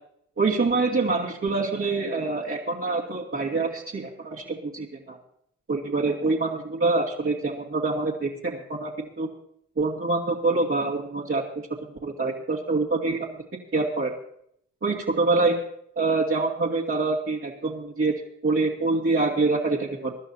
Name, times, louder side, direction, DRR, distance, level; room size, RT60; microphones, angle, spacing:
voice 1, 0.4-5.2 5.7-9.3 9.8-11.7 12.0-13.3 13.7-14.1 14.8-15.6 16.0-18.1 18.4-20.1, right 3 dB, 45° right, -5 dB, 2.4 m, -25 dB
24.5 x 11.5 x 2.8 m, 0.70 s
cardioid pair, 55°, 32 cm